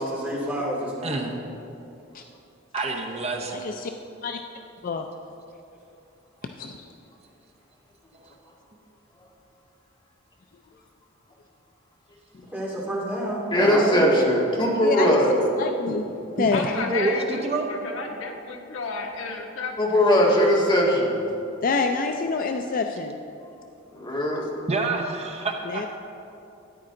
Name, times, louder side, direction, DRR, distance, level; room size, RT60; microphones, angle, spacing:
voice 1, 0.0-1.3 12.5-14.1, right 1 dB, 10° right, -5 dB, 2.4 m, -28 dB
voice 2, 2.7-3.5 8.2-8.3 15.9-16.0 16.4-16.5 16.8-17.8 24.7-25.8, right 3 dB, 30° right, 2 dB, 0.8 m, -27 dB
voice 3, 3.5-3.9 4.2-4.4 4.8-5.1 6.6-6.9 14.8-15.2 15.6-16.1 16.4-16.8 21.6-23.2 25.7-25.9, left 4 dB, 45° left, 5 dB, 0.4 m, -26 dB
voice 4, 13.5-15.3 19.8-21.2 23.9-24.4, equal, 25° left, -3 dB, 1.8 m, -20 dB
voice 5, 16.5-20.0, left 3 dB, 75° left, 2 dB, 1.1 m, -32 dB
13.0 x 9.8 x 3.8 m, 2.8 s
head